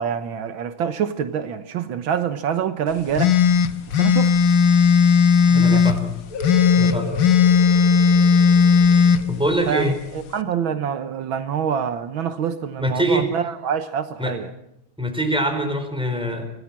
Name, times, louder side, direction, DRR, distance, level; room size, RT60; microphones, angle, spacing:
voice 1, 0.0-3.4 4.0-4.4 5.5-5.9 9.7-14.5, right 8 dB, 75° right, 10 dB, 1.9 m, -26 dB
sound 1, 3.2-6.0 6.4-9.2, left 6 dB, 65° left, 1.7 m, -15 dB
voice 2, 5.5-6.1 6.8-7.2 9.3-10.0 12.8-13.2 14.2-14.3 15.0-16.4, equal, ahead, 4 dB, 4.4 m, -23 dB
sound 2, 6.3-11.7, left 2 dB, 85° left, 2.6 m, -35 dB
25.5 x 18.5 x 7.5 m, 0.80 s
omnidirectional pair, 2.2 m